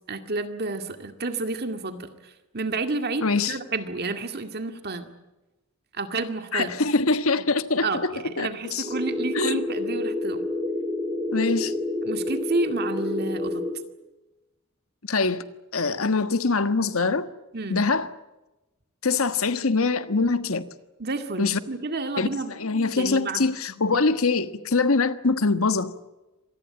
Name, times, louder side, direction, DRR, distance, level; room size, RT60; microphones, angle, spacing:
voice 1, 0.1-5.1 5.9-6.8 7.8-10.5 12.0-13.6 17.5-17.8 21.0-22.5 22.9-23.5, right 3 dB, 45° right, 2.1 m, -30 dB
voice 2, 3.2-3.5 6.5-8.9 9.3-9.6 11.3-11.7 15.1-15.4 15.7-17.3 17.7-18.1 19.0-20.6 21.4-21.6 22.2-25.9, left 3 dB, 70° left, 1.4 m, -23 dB
sound 1, 8.8-13.8, left 2 dB, 25° right, 3.2 m, -29 dB
26.0 x 19.5 x 8.7 m
head